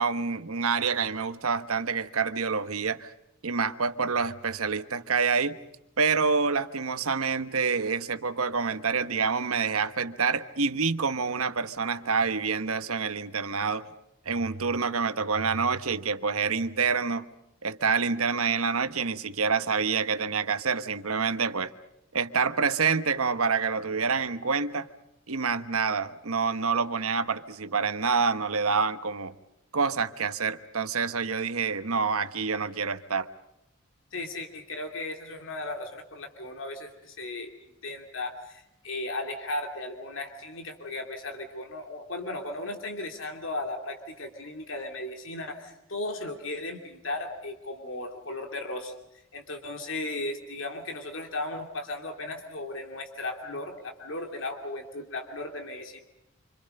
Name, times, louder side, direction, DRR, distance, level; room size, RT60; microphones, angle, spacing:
voice 1, 0.0-3.1 3.4-5.6 6.0-13.9 14.2-17.2 17.6-21.7 22.1-24.9 25.3-29.3 29.7-33.3, right 5 dB, 80° right, 1.2 m, -27 dB
voice 2, 34.1-37.5 37.8-48.9 49.3-56.0, left 2 dB, 60° left, 2.8 m, -36 dB
27.5 x 26.0 x 5.4 m
head